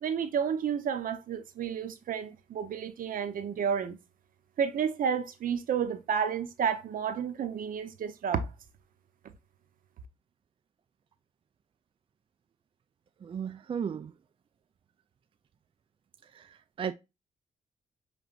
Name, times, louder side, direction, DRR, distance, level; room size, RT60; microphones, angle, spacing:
voice 1, 0.0-4.0 4.6-8.5, right 7 dB, 75° right, 0.9 m, -31 dB
voice 2, 13.2-14.1 16.3-16.9, right 7 dB, 40° right, 0.4 m, -35 dB
6.0 x 3.4 x 2.4 m
cardioid pair, 105°, 14 cm